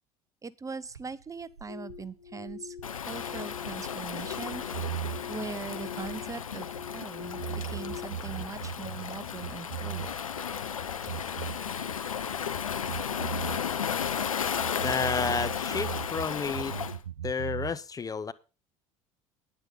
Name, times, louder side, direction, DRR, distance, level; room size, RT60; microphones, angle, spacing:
voice 1, 0.4-2.8 3.1-4.9 5.3-10.1, right 5 dB, 20° right, 0.7 m, -41 dB
sound 1, 0.8-7.0 7.3-10.4 10.7-12.5 12.8-16.3 16.5-17.8, right 12 dB, 85° right, 0.6 m, -39 dB
sound 2, 1.7-8.0, left 9 dB, 65° left, 1.8 m, -45 dB
Waves surf, 2.8-17.0, left 7 dB, 85° left, 0.6 m, -34 dB
voice 2, 14.8-16.8 17.2-18.3, left 5 dB, 20° left, 0.6 m, -31 dB
9.9 x 9.8 x 5.1 m
figure-of-eight pair, 65°, 17 cm